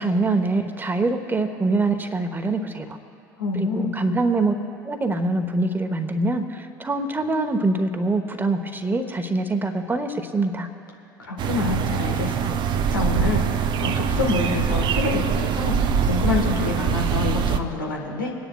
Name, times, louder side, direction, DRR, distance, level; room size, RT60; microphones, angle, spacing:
voice 1, 0.0-2.8 3.5-4.5 4.8-10.7, right 2 dB, 20° right, 7 dB, 1.1 m, -24 dB
voice 2, 3.4-4.0 11.2-12.5 12.9-18.3, left 3 dB, 80° left, 0 dB, 1.4 m, -27 dB
sound 1, 11.4-17.6, right 7 dB, 45° right, 0.6 m, -23 dB
27.0 x 10.0 x 2.3 m, 2.7 s
figure-of-eight pair, 65°, 11 cm